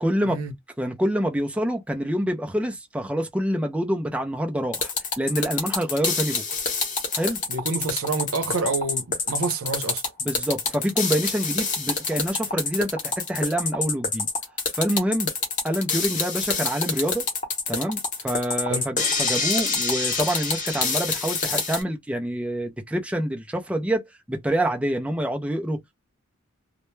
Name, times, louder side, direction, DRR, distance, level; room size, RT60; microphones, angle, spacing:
voice 1, 0.0-0.4 0.8-6.4 7.1-7.4 10.2-14.3 14.7-15.3 15.6-17.3 17.7-26.0, equal, 5° right, 0.4 m, -26 dB
sound 1, 4.7-21.8, left 4 dB, 40° left, 0.8 m, -27 dB
voice 2, 7.5-10.0 18.7-18.8, right 3 dB, 85° right, 0.7 m, -28 dB
2.2 x 2.1 x 3.0 m
head